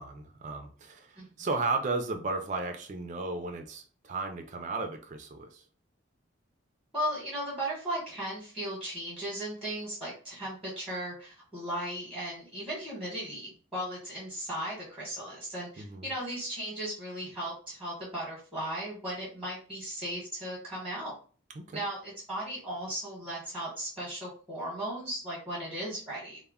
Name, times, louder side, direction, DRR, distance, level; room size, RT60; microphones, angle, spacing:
voice 1, 0.0-5.6 15.8-16.1 21.6-21.8, right 3 dB, 35° right, 5 dB, 0.3 m, -34 dB
voice 2, 6.9-21.1 21.7-26.4, right 1 dB, ahead, -6 dB, 0.9 m, -36 dB
2.1 x 2.1 x 3.4 m, 0.41 s
head